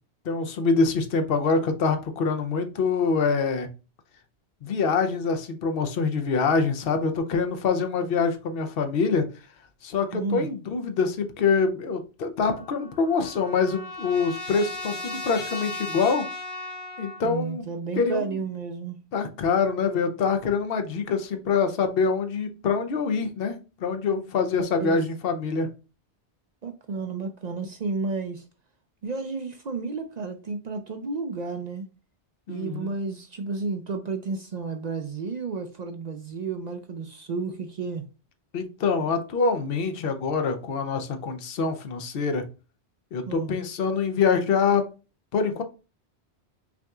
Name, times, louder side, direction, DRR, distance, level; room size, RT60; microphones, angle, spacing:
voice 1, 0.2-3.7 4.6-9.2 9.8-16.3 17.0-17.6 18.0-18.4 19.1-25.7 32.5-32.9 38.5-42.4 43.1-44.9 45.3-45.6, left 5 dB, 60° left, 0.9 m, -25 dB
voice 2, 10.1-10.5 17.2-19.0 24.6-25.0 26.6-28.4 29.0-31.9 32.5-38.0 43.3-43.6, right 4 dB, 55° right, 0.5 m, -32 dB
Trumpet, 12.5-17.2, left 2 dB, 85° left, 1.4 m, -36 dB
5.9 x 2.8 x 2.3 m
omnidirectional pair, 1.1 m